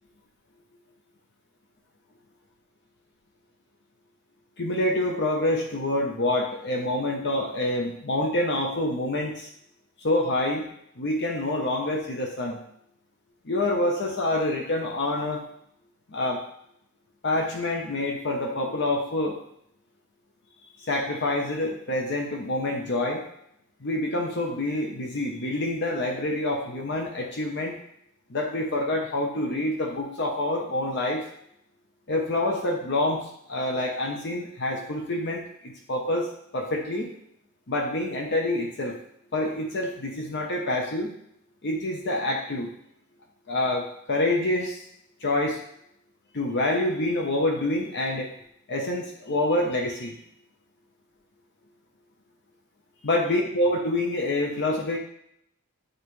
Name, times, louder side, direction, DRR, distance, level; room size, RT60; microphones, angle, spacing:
voice 1, 4.6-9.5 10.0-10.7 11.0-12.6 13.4-15.4 16.1-16.4 17.2-19.4 20.8-23.2 23.8-27.8 28.3-31.2 32.1-37.1 37.7-39.0 39.3-41.1 41.6-42.7 43.5-44.8 45.2-45.6 46.3-48.3 48.7-50.2 53.0-55.0, left 1 dB, 55° left, 0 dB, 0.9 m, -27 dB
8.9 x 4.0 x 3.2 m, 0.74 s
head